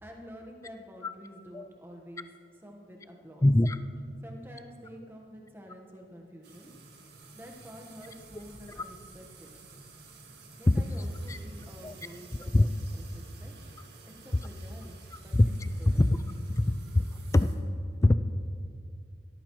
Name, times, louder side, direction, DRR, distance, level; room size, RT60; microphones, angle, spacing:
voice 1, 0.0-2.3 2.6-3.5 4.2-6.7 7.3-9.5 10.6-13.5 14.0-15.3 15.8-16.0, equal, 10° right, 1 dB, 1.2 m, -48 dB
voice 2, 3.4-3.8 11.3-11.4 11.8-11.9 12.5-12.7 15.3-15.5 16.0-16.1 16.6-16.7 16.9-17.0 17.3-17.5 18.0-18.1, left 2 dB, 15° left, 11 dB, 0.3 m, -21 dB
sound 1, 6.4-17.6, right 3 dB, 65° right, 1.9 m, -51 dB
17.0 x 13.5 x 3.1 m, 2.3 s
head